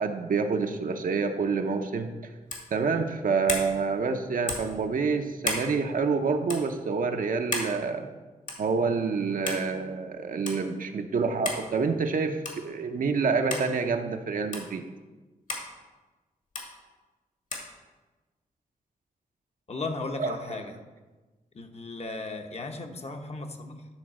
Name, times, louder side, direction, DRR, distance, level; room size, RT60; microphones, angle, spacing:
voice 1, 0.0-2.1 2.7-8.1 8.6-14.8 20.2-20.4, right 4 dB, 65° right, 5 dB, 0.8 m, -27 dB
sound 1, 2.5-2.7 3.5-3.7 4.5-4.7 5.4-5.7 6.5-6.6 7.5-7.7 8.5-8.7 9.5-9.6 10.5-10.6 11.4-11.7 12.4-12.7 13.5-13.7 14.5-14.7 15.5-15.7 16.5-16.7 17.5-17.7, left 2 dB, 60° left, 2.0 m, -32 dB
voice 2, 19.7-20.8 21.5-23.9, left 3 dB, 45° left, 4 dB, 1.0 m, -36 dB
11.0 x 3.9 x 6.2 m, 1.2 s
cardioid pair, 75°, 15 cm